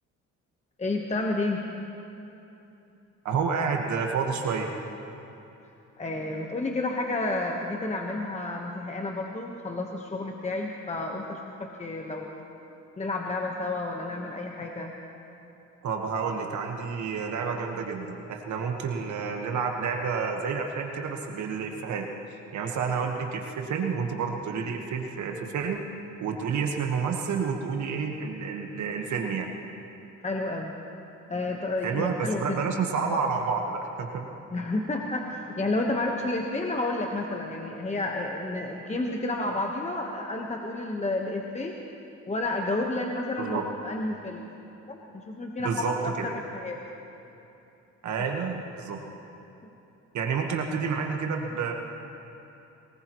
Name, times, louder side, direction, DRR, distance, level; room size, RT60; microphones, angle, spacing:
voice 1, 0.8-1.6 6.0-12.3 13.0-14.9 30.2-30.7 31.3-32.6 34.5-41.7 42.3-44.5 44.9-45.0 45.3-46.8, left 2 dB, 25° left, 1 dB, 1.2 m, -30 dB
voice 2, 3.2-4.7 15.8-22.1 22.5-25.8 26.2-29.5 31.8-34.3 43.4-43.6 45.6-46.2 48.0-49.0 50.1-51.7, right 5 dB, 70° right, 2 dB, 1.4 m, -29 dB
23.0 x 19.5 x 3.1 m, 2.9 s
cardioid pair, 90°, 30 cm